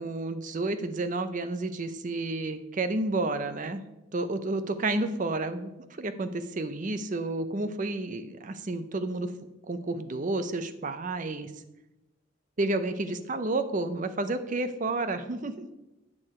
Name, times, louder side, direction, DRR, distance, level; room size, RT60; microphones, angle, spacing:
voice 1, 0.0-3.8 4.1-5.7 6.0-9.3 9.7-11.5 12.6-15.7, right 2 dB, 40° right, 10 dB, 0.6 m, -30 dB
8.6 x 6.5 x 4.3 m, 0.97 s
head